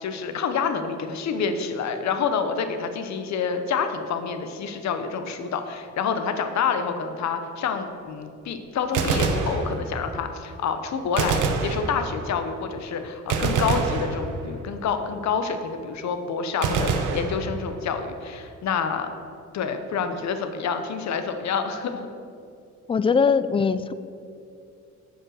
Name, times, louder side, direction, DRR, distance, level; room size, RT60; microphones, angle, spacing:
voice 1, 0.0-19.1 19.5-22.1, left 6 dB, 65° left, 8 dB, 0.9 m, -28 dB
Gunshot gunfire, 8.8-10.2 11.2-12.4 13.3-14.7 16.6-18.0, right 4 dB, 85° right, 1.0 m, -26 dB
voice 2, 22.9-23.9, left 5 dB, 20° left, 14 dB, 0.3 m, -21 dB
8.9 x 5.4 x 6.4 m, 2.5 s
cardioid pair, 90°, 30 cm